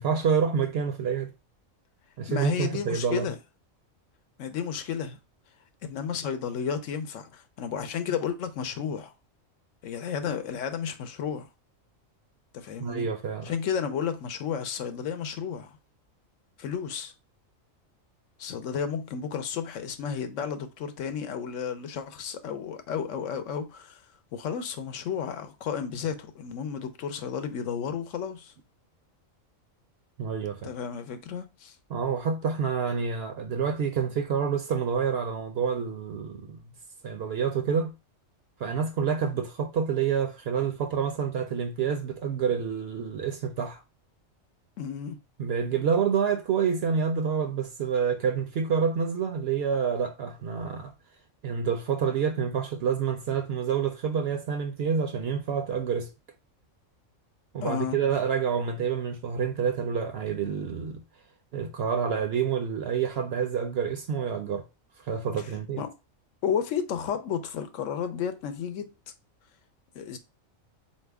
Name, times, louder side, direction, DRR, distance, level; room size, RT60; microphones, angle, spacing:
voice 1, 0.0-1.3 2.2-3.3 12.8-13.5 30.2-30.7 31.9-36.6 37.0-37.9 38.6-43.8 45.4-50.9 51.4-56.1 57.5-61.0 61.5-64.6 65.1-65.8, right 6 dB, 65° right, 0.7 m, -28 dB
voice 2, 2.3-3.3 4.4-5.2 5.8-9.1 9.8-11.5 12.5-13.1 13.4-15.8 16.6-17.1 18.4-24.0 24.3-28.5 30.6-31.8 44.8-45.2 57.6-58.0 65.4-65.5 65.8-65.9 66.4-68.9 69.9-70.2, left 7 dB, 75° left, 1.0 m, -32 dB
4.1 x 2.8 x 3.4 m
omnidirectional pair, 1.4 m